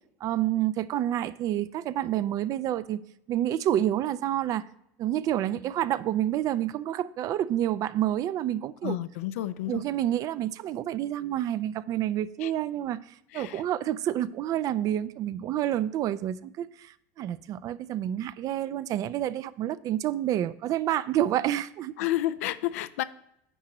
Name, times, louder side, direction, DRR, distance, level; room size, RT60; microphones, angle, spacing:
voice 1, 0.2-3.0 3.3-4.6 5.0-9.0 9.7-13.0 13.3-21.9, right 12 dB, 50° right, 0.4 m, -28 dB
voice 2, 8.8-9.8 12.4-12.5 13.3-13.6 22.0-23.0, left 14 dB, 85° left, 0.5 m, -30 dB
10.0 x 7.4 x 3.0 m
supercardioid pair, 100°, 8 cm